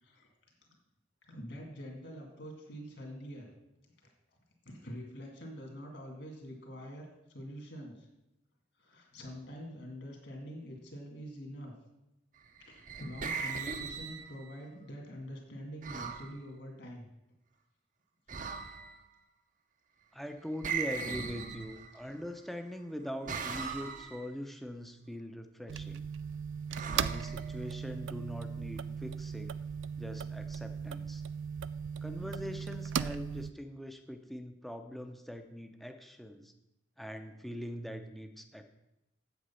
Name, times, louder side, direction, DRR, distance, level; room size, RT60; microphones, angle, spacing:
voice 1, 1.3-3.5 4.6-8.1 8.8-11.7 12.6-17.1 22.0-22.1, equal, 60° left, 1 dB, 2.3 m, -45 dB
sound 1, 12.6-14.6 15.8-16.3 18.3-19.0 20.6-22.1 23.3-24.3 26.7-27.9, right 5 dB, 40° right, 0.7 m, -39 dB
voice 2, 20.1-26.1 26.9-29.6 30.0-31.2 32.0-36.5 37.0-38.6, equal, ahead, 6 dB, 0.6 m, -42 dB
sound 2, 25.7-33.5, right 7 dB, 70° right, 0.3 m, -38 dB
8.2 x 7.8 x 5.6 m, 0.91 s
head